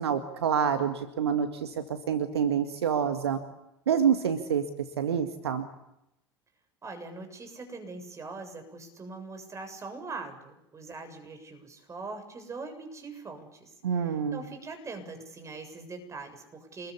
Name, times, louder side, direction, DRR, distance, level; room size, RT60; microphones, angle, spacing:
voice 1, 0.0-3.4 3.9-4.7 5.0-5.7 13.8-14.4, right 7 dB, 70° right, 8 dB, 2.0 m, -27 dB
voice 2, 6.8-16.9, right 3 dB, 20° right, 6 dB, 7.4 m, -42 dB
27.5 x 21.5 x 8.4 m, 0.84 s
figure-of-eight pair, 75°, 14 cm